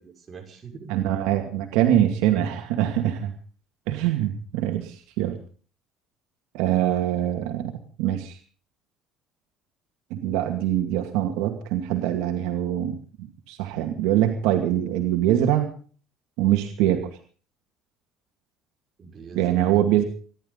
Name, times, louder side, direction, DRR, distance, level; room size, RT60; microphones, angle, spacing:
voice 1, 0.0-1.0 19.0-19.8, right 5 dB, 30° right, 1 dB, 5.8 m, -44 dB
voice 2, 0.9-3.3 3.9-5.4 6.5-7.7 8.0-8.4 10.1-13.0 13.5-15.7 16.4-17.2 19.3-20.0, right 12 dB, 90° right, 4 dB, 2.3 m, -23 dB
25.0 x 11.5 x 4.0 m, 0.41 s
cardioid pair, 125°, 0 cm